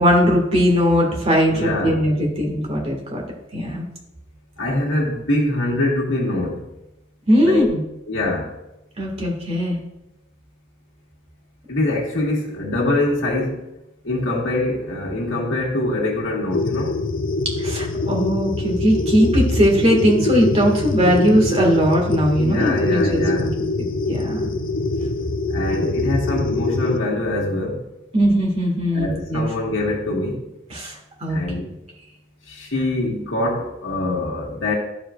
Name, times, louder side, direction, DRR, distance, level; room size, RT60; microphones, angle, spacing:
voice 1, 0.0-3.2 3.5-3.8 7.3-7.8 9.0-9.8 17.6-24.5 28.1-29.5 30.7-30.9 31.2-31.4, equal, 30° right, -1 dB, 1.8 m, -19 dB
voice 2, 1.5-2.1 4.6-6.6 7.4-7.7 8.1-8.5 11.7-13.6 14.0-17.0 22.3-23.6 25.5-27.8 28.9-30.5 31.3-31.7 32.5-34.7, left 2 dB, 75° left, -3 dB, 1.7 m, -24 dB
sound 1, 16.5-27.0, left 2 dB, 45° left, 0.5 m, -23 dB
12.5 x 5.0 x 2.4 m, 0.91 s
head